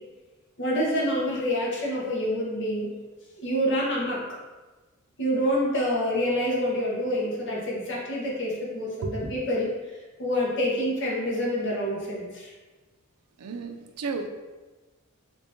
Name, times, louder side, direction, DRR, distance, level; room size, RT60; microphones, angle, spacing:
voice 1, 0.6-2.9 3.4-4.4 5.2-9.7 10.2-12.5, equal, 55° left, -4 dB, 1.0 m, -27 dB
voice 2, 13.4-14.3, right 4 dB, 90° right, 5 dB, 0.4 m, -32 dB
3.8 x 2.5 x 3.6 m, 1.2 s
head